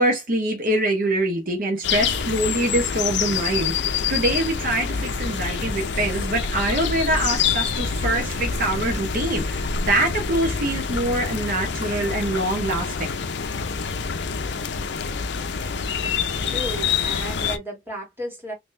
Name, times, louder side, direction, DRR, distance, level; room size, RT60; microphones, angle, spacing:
voice 1, 0.0-12.9, right 1 dB, 50° right, 0.9 m, -24 dB
sound 1, 1.8-17.6, left 6 dB, 75° left, 0.5 m, -26 dB
voice 2, 16.4-18.5, right 1 dB, 10° right, 1.9 m, -34 dB
3.8 x 2.9 x 2.6 m
head